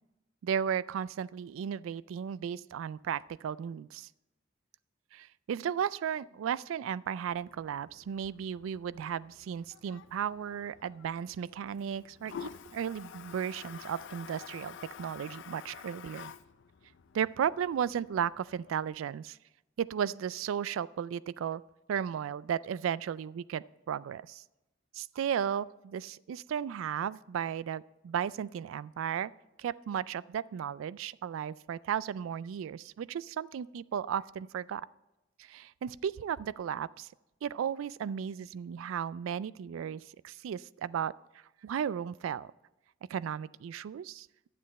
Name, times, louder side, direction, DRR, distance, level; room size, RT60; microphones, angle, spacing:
voice 1, 0.4-4.1 5.1-16.3 17.1-19.4 19.8-21.6 21.9-24.4 24.9-29.3 29.6-34.8 35.4-37.1 37.4-41.1 41.6-42.5 43.1-44.3, right 8 dB, 75° right, 20 dB, 0.3 m, -35 dB
Toilet flush, 7.3-18.9, left 7 dB, 65° left, 0.4 m, -50 dB
11.0 x 7.5 x 4.1 m, 0.98 s
head